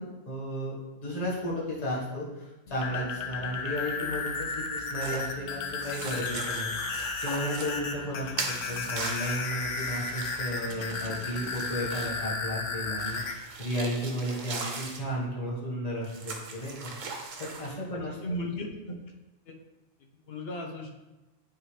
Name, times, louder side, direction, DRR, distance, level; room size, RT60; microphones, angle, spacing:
voice 1, 0.0-6.7 7.2-16.9 17.4-18.2, equal, 30° left, -6 dB, 1.5 m, -34 dB
sound 1, 2.7-13.3, left 4 dB, 75° left, 1.0 m, -34 dB
sound 2, 5.0-5.3 5.8-7.7 8.4-12.2 13.0-15.0 16.0-17.7, right 4 dB, 85° right, 1.2 m, -39 dB
voice 2, 17.9-18.9 19.5-19.6 20.3-20.9, left 1 dB, 55° left, 1 dB, 1.1 m, -36 dB
9.0 x 3.8 x 3.3 m, 1.1 s
omnidirectional pair, 1.3 m